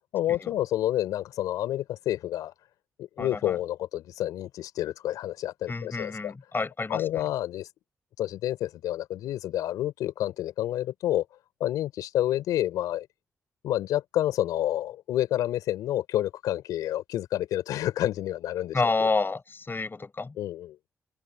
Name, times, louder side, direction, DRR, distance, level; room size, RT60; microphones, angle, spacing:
voice 1, 0.1-2.5 3.0-6.3 6.9-7.7 8.2-11.2 11.6-13.1 13.6-18.8 20.4-20.8, left 13 dB, 85° left, 4.9 m, -29 dB
voice 2, 3.2-3.6 5.7-7.2 18.7-20.4, left 3 dB, 35° left, 6.9 m, -29 dB
supercardioid pair, 50°, 6 cm